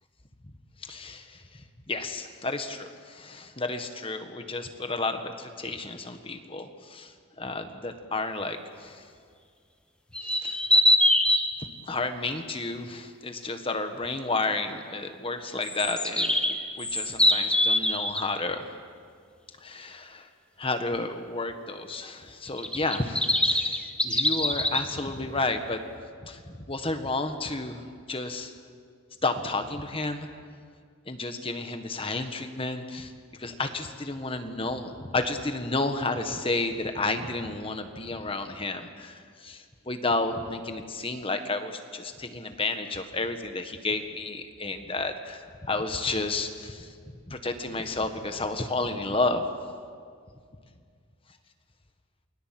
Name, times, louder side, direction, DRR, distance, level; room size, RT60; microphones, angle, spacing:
voice 1, 0.8-1.4 1.9-7.1 7.4-9.0 10.2-10.6 11.8-18.6 19.6-20.3 20.6-25.8 26.2-26.4 26.7-27.8 28.1-28.5 29.2-30.3 31.1-33.1 33.4-46.9 47.3-49.4, left 3 dB, 25° left, 7 dB, 1.5 m, -31 dB
sound 1, 10.1-11.5 15.6-18.2 22.6-24.8, left 1 dB, 5° left, 1.5 m, -23 dB
28.5 x 22.0 x 7.7 m, 2.1 s
head